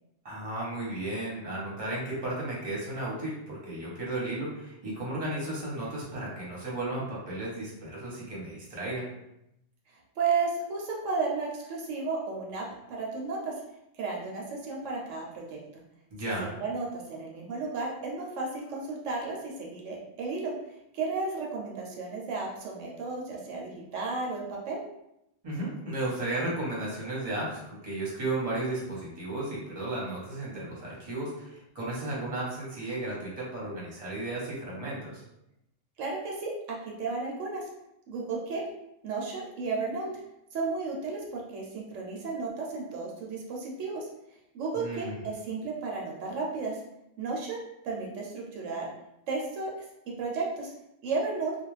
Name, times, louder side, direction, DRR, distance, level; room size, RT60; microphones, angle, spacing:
voice 1, 0.2-9.1 16.1-16.5 25.4-35.2 44.7-45.1, right 2 dB, 30° right, -5 dB, 0.9 m, -34 dB
voice 2, 9.9-13.5 14.0-15.6 16.4-20.5 20.9-24.8 36.0-36.5 37.0-37.7 38.1-38.6 39.0-40.1 40.5-44.1 44.5-46.8 47.2-48.9 49.3-49.7 50.2-50.7 51.0-51.5, right 4 dB, 80° right, -1 dB, 1.0 m, -33 dB
2.4 x 2.2 x 3.1 m, 0.83 s
omnidirectional pair, 1.3 m